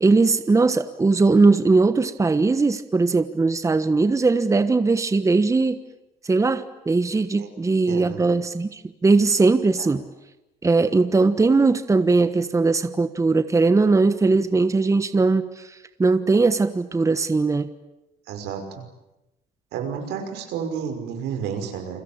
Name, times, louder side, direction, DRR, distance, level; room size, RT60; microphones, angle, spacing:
voice 1, 0.0-5.8 6.2-10.0 10.6-15.7 16.0-17.7, right 3 dB, 20° right, 11 dB, 1.3 m, -19 dB
voice 2, 7.9-8.2 9.8-9.9 18.3-18.8 19.7-22.0, right 7 dB, 85° right, 5 dB, 5.7 m, -31 dB
29.5 x 22.0 x 8.9 m, 0.96 s
cardioid pair, 110°, 17 cm